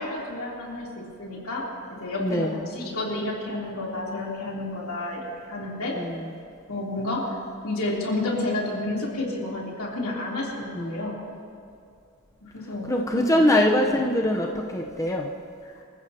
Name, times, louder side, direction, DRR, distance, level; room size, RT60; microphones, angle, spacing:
voice 1, 0.0-1.7 2.0-5.9 6.7-7.4 7.6-11.2 12.5-12.9 13.1-13.6, left 2 dB, 70° left, -4 dB, 3.2 m, -30 dB
voice 2, 2.2-2.7 5.9-6.3 10.7-11.1 12.9-15.3, left 1 dB, 15° left, 1 dB, 0.7 m, -23 dB
26.5 x 14.5 x 2.8 m, 2.4 s
head